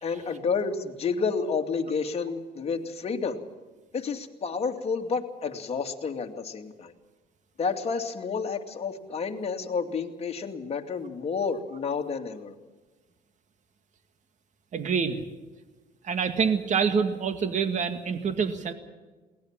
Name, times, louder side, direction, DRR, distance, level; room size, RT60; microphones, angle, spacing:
voice 1, 0.0-3.4 3.9-6.9 7.6-12.5, left 5 dB, 35° left, 3 dB, 2.5 m, -30 dB
voice 2, 14.7-15.2 16.0-18.7, right 6 dB, 45° right, 8 dB, 2.0 m, -26 dB
21.5 x 18.5 x 7.5 m, 1.3 s
cardioid pair, 110°, 17 cm